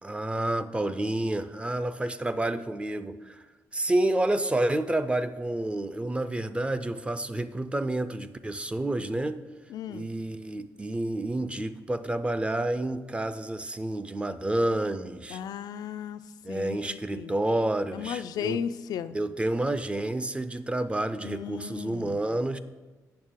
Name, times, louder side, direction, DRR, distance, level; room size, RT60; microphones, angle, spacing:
voice 1, 0.0-3.4 3.7-9.4 9.9-15.4 16.4-18.6 19.1-22.6, right 1 dB, 15° right, 12 dB, 0.4 m, -29 dB
voice 2, 9.7-10.1 15.3-16.2 16.5-17.3 17.9-19.2 21.2-22.2, left 8 dB, 75° left, 11 dB, 0.4 m, -35 dB
8.7 x 6.2 x 3.7 m, 1.3 s
cardioid pair, 90°, 7 cm